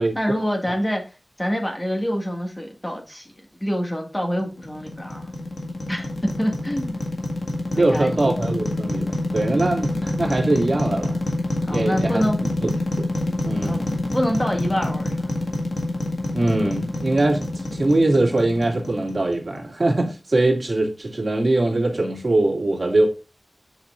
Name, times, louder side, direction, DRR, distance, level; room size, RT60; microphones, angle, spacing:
voice 1, 0.0-3.3 3.6-5.3 5.9-6.1 6.4-7.0 7.7-8.2 11.6-12.4 13.3-13.4 13.6-13.8 14.1-15.3, equal, 20° left, 1.8 m, -26 dB
sound 1, 4.4-19.6, left 1 dB, 80° left, 1.8 m, -27 dB
voice 2, 7.7-11.2 11.7-12.2 12.6-12.7 13.0-13.1 13.4-13.8 16.3-23.1, right 2 dB, 55° right, 2.2 m, -22 dB
7.8 x 5.5 x 2.5 m
wide cardioid pair, 70°, 0 cm